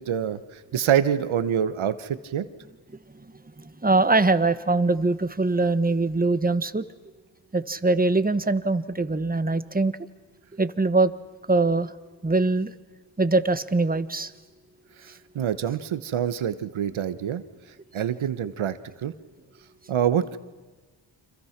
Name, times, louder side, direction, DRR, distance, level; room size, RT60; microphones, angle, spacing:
voice 1, 0.0-2.5 15.0-17.4 17.9-19.1 19.9-20.4, right 9 dB, 80° right, 13 dB, 1.3 m, -26 dB
voice 2, 3.6-6.8 7.5-9.9 10.6-11.1 11.5-11.9 12.2-12.7 13.2-14.3, right 3 dB, 20° right, 13 dB, 1.3 m, -22 dB
30.0 x 26.5 x 6.0 m, 1.3 s
cardioid pair, 65°, 47 cm